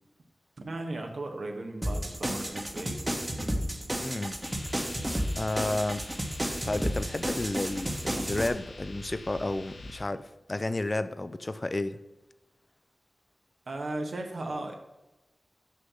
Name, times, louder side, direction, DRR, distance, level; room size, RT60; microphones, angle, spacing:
voice 1, 0.6-3.0 3.4-3.7 13.7-14.7, right 2 dB, 75° right, 1.4 m, -36 dB
sound 1, 1.8-8.5, equal, 25° right, 1.3 m, -32 dB
voice 2, 4.0-4.4 5.4-6.1 6.6-12.0, left 2 dB, 35° left, 0.5 m, -31 dB
sound 2, 4.4-10.0, left 2 dB, 70° left, 1.2 m, -45 dB
6.4 x 5.7 x 6.3 m
wide cardioid pair, 55°, 0 cm